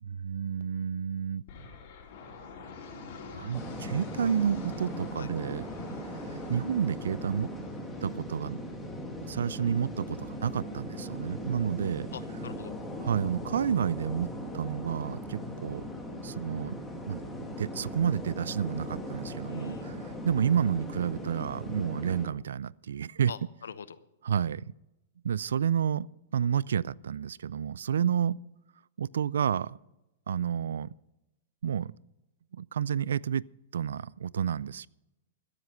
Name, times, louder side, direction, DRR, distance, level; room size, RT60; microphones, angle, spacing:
voice 1, 0.0-1.4 3.3-5.6 6.5-7.5 8.0-8.6 9.2-12.1 13.0-15.8 16.2-17.2 17.6-23.3 24.2-24.6 25.2-26.1 26.3-28.4 29.0-29.8 30.3-30.9 31.6-31.9 32.5-33.5 33.7-34.9, right 8 dB, 85° right, 24 dB, 0.3 m, -30 dB
sound 1, 1.5-11.3, left 4 dB, 55° left, 4.2 m, -50 dB
sound 2, 3.5-22.3, equal, 5° left, 2.3 m, -39 dB
voice 2, 12.1-12.7 19.5-19.9 23.3-24.0, left 7 dB, 90° left, 15 dB, 0.9 m, -44 dB
14.0 x 10.0 x 5.6 m, 0.95 s
hypercardioid pair, 140°, 0 cm